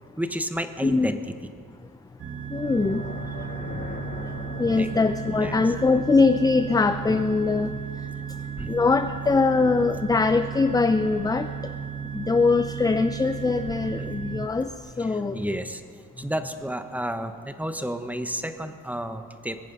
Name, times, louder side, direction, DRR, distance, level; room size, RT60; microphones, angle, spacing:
voice 1, 0.2-1.2 4.8-4.9 5.3-5.6 8.6-8.7 14.0-14.1 15.1-15.8 16.2-19.6, equal, 5° right, 8 dB, 1.0 m, -31 dB
voice 2, 0.8-1.1 2.5-3.0 4.6-7.7 8.7-11.5 12.1-14.7 15.0-15.4, left 4 dB, 10° left, 9 dB, 0.5 m, -22 dB
sound 1, 2.2-14.5, right 7 dB, 50° right, 1.0 m, -35 dB
sound 2, 2.6-7.7, left 4 dB, 35° left, 1.2 m, -41 dB
21.5 x 9.3 x 5.4 m, 2.1 s
cardioid pair, 90°, 30 cm